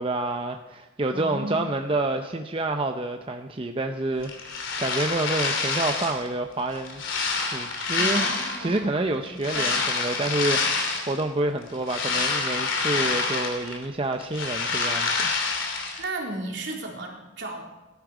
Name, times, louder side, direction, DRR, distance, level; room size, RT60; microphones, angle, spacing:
voice 1, 0.0-7.0 7.4-8.3 8.6-15.3, right 2 dB, 30° right, 5 dB, 0.6 m, -28 dB
voice 2, 1.1-1.7 8.0-8.9 9.3-9.8 16.0-17.7, right 2 dB, 65° right, -2 dB, 3.6 m, -34 dB
sound 1, 4.2-6.3 6.7-8.8 9.4-11.2 11.6-13.8 14.1-16.0, left 4 dB, 80° left, 2.9 m, -27 dB
19.0 x 11.5 x 4.9 m, 1.1 s
head